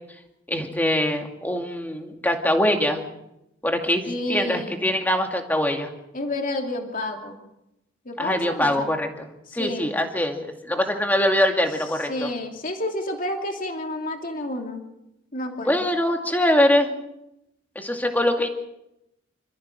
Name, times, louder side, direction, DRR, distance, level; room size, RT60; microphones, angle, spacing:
voice 1, 0.5-3.0 3.6-5.9 8.2-9.3 9.5-12.3 15.6-16.9 17.8-18.5, left 1 dB, 10° left, 3 dB, 2.2 m, -23 dB
voice 2, 4.0-4.8 6.1-7.4 8.1-8.9 9.6-9.9 12.1-14.8 15.3-15.9, left 1 dB, 45° left, 2 dB, 2.7 m, -30 dB
28.0 x 14.5 x 6.4 m, 0.87 s
head